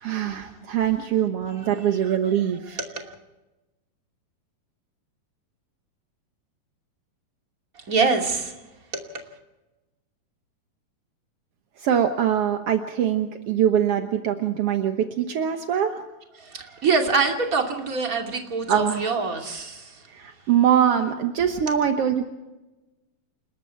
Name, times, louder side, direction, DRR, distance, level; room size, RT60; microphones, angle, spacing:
voice 1, 0.0-2.8 11.8-16.0 18.7-19.2 20.1-22.3, right 9 dB, 65° right, 6 dB, 1.5 m, -23 dB
voice 2, 2.8-3.1 7.9-8.5 8.9-9.0 16.4-20.0, right 4 dB, 25° right, 2 dB, 2.7 m, -25 dB
29.0 x 20.5 x 4.6 m, 1.0 s
omnidirectional pair, 4.1 m